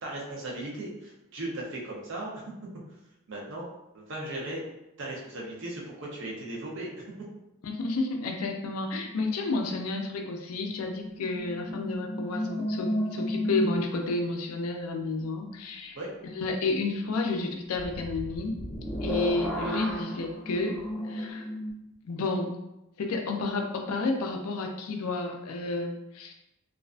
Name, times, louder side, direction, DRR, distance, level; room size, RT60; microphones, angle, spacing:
voice 1, 0.0-2.4 3.3-3.7 3.9-4.6 5.0-6.9 15.9-16.1, right 1 dB, 60° right, -3 dB, 0.6 m, -37 dB
voice 2, 7.6-16.0 16.3-18.5 19.0-20.8 21.1-21.5 22.1-22.6 23.0-26.3, left 3 dB, 85° left, 3 dB, 0.4 m, -31 dB
sound 1, 10.7-14.2 17.7-21.7, equal, ahead, 0.7 m, -33 dB
2.4 x 2.2 x 2.4 m, 0.91 s
head